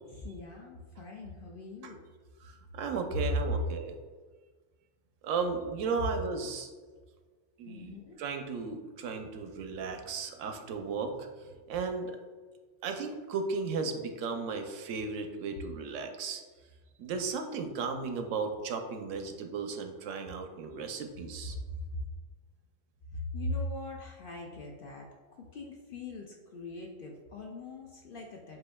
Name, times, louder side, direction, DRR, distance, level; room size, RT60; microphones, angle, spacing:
voice 1, 0.1-2.0 7.6-8.2 21.5-21.6 23.1-28.6, left 2 dB, 60° left, 0 dB, 0.6 m, -41 dB
voice 2, 2.4-4.0 5.2-6.7 7.6-12.1 12.8-16.4 17.0-21.6, right 4 dB, 80° right, 5 dB, 0.9 m, -35 dB
7.6 x 2.6 x 2.2 m, 1.4 s
omnidirectional pair, 1.3 m